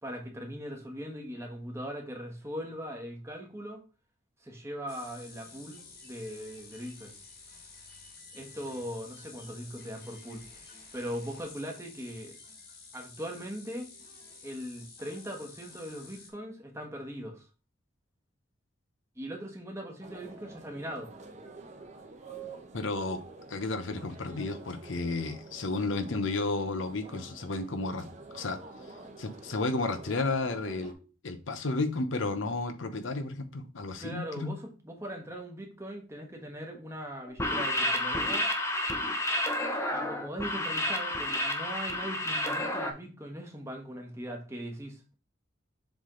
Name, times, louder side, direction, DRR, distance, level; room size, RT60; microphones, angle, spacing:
voice 1, 0.0-3.8 4.4-7.1 8.3-10.5 10.9-12.4 12.9-13.9 14.4-17.4 19.2-21.1 34.0-38.5 39.9-45.1, equal, 15° right, 1.3 m, -40 dB
sound 1, 4.9-16.3, left 4 dB, 55° left, 1.6 m, -51 dB
sound 2, 20.0-30.9, right 3 dB, 35° right, 1.0 m, -48 dB
voice 2, 22.7-28.1 28.3-28.6 29.2-31.0 31.2-34.5, left 3 dB, 80° left, 0.8 m, -32 dB
sound 3, 37.3-42.9, left 1 dB, 15° left, 0.7 m, -30 dB
7.1 x 3.4 x 3.8 m
head